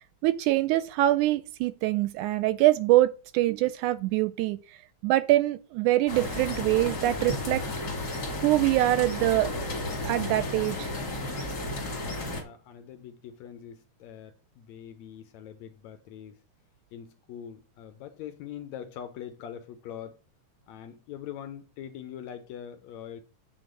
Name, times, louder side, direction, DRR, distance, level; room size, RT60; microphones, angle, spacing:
voice 1, 0.2-4.6 5.0-7.6 8.4-9.5 10.1-10.9, right 16 dB, 80° right, 1.9 m, -24 dB
sound 1, 6.1-12.4, left 1 dB, 35° left, 2.1 m, -33 dB
voice 2, 11.9-16.4 16.9-20.2 20.7-23.2, left 9 dB, 70° left, 1.9 m, -43 dB
8.6 x 4.0 x 6.3 m
omnidirectional pair, 3.7 m